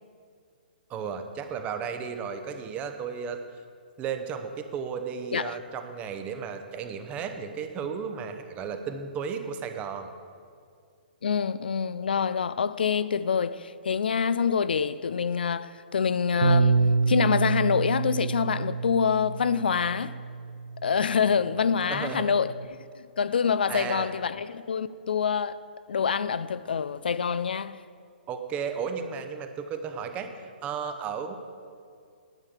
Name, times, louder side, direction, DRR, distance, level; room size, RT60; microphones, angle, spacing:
voice 1, 0.9-3.4 4.0-10.1 21.9-22.4 23.7-24.1 28.3-30.3 30.6-31.3, right 6 dB, 25° right, 0.9 m, -34 dB
voice 2, 11.2-20.1 20.8-22.5 23.0-25.6 25.9-27.8, left 6 dB, 70° left, 0.4 m, -26 dB
Bass guitar, 16.4-22.6, right 4 dB, 80° right, 0.6 m, -28 dB
10.5 x 6.4 x 7.2 m
figure-of-eight pair, 125°, 5 cm